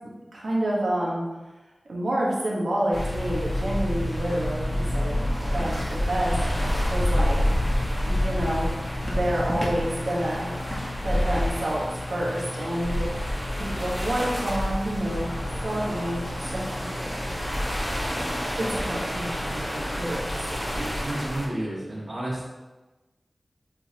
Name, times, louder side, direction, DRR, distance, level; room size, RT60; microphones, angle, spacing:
voice 1, 0.3-1.2 1.9-5.2 5.5-7.4 8.0-8.7 9.0-10.5 11.0-13.1 13.6-15.3 15.6-17.0 18.6-20.4 20.7-20.9, right 1 dB, 85° right, -4 dB, 1.4 m, -29 dB
sound 1, 2.9-21.5, left 1 dB, 10° left, 1.6 m, -28 dB
voice 2, 21.0-22.4, right 1 dB, 50° right, -11 dB, 1.8 m, -31 dB
8.0 x 4.0 x 3.0 m, 1.1 s
wide cardioid pair, 65°, 0 cm